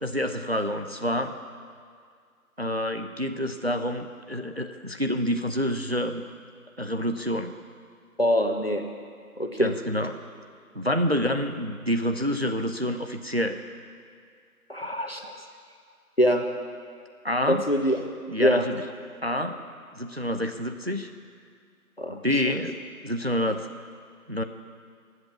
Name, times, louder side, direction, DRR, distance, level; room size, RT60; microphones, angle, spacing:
voice 1, 0.0-1.4 2.6-6.2 6.8-7.5 9.6-10.2 10.7-13.6 17.2-17.6 18.3-18.8 19.2-19.6 19.9-21.1 22.1-22.8 23.0-23.7 24.3-24.4, equal, 45° right, 7 dB, 0.8 m, -27 dB
voice 2, 8.2-8.8 9.4-9.7 14.7-15.3 16.2-16.4 17.5-18.0 18.4-18.7 22.0-22.2, equal, 40° left, 4 dB, 1.3 m, -23 dB
22.5 x 8.1 x 7.1 m, 2.2 s
figure-of-eight pair, 175°, 45 cm